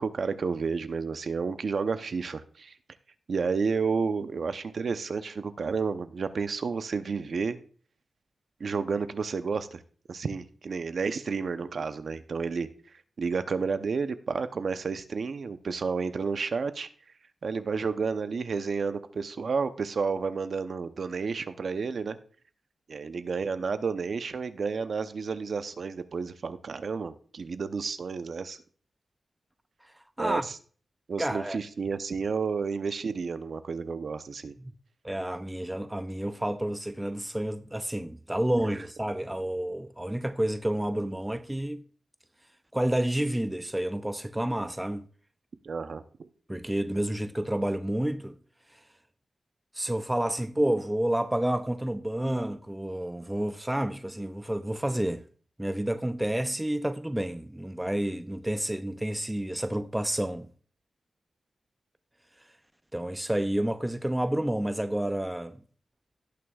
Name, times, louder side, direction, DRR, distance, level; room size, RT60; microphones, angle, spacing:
voice 1, 0.0-2.7 3.3-7.6 8.6-9.8 10.1-12.7 13.2-16.9 17.4-22.2 22.9-28.6 30.2-30.6 31.1-34.5 45.6-46.6, right 5 dB, 55° right, 0.7 m, -31 dB
voice 2, 31.2-31.6 34.6-34.7 35.0-41.9 42.7-45.1 46.5-48.4 49.8-55.2 55.6-60.5 62.9-65.6, right 1 dB, 10° right, 0.4 m, -29 dB
17.5 x 6.2 x 2.4 m
wide cardioid pair, 140°, 0 cm